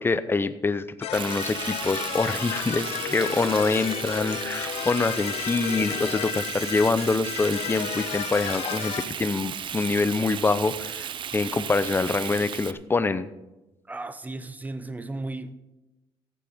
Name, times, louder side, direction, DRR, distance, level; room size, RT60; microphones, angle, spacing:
voice 1, 0.0-13.3, left 3 dB, 20° left, 0.7 m, -25 dB
sound 1, 1.0-9.0, left 11 dB, 85° left, 0.7 m, -33 dB
Frying (food), 1.1-12.7, right 9 dB, 50° right, 0.6 m, -35 dB
voice 2, 13.8-15.5, right 2 dB, 15° right, 0.9 m, -35 dB
14.0 x 8.6 x 5.2 m
cardioid pair, 100°, 10 cm